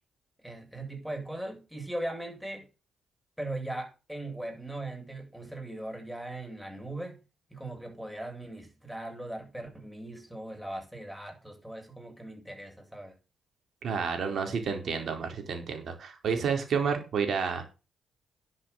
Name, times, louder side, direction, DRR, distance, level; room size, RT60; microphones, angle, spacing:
voice 1, 0.4-2.7 3.4-7.2 7.5-13.2, right 1 dB, ahead, 7.1 m, -39 dB
voice 2, 13.8-17.6, right 6 dB, 60° right, 4.4 m, -30 dB
10.5 x 7.8 x 6.6 m
supercardioid pair, 55°, 0 cm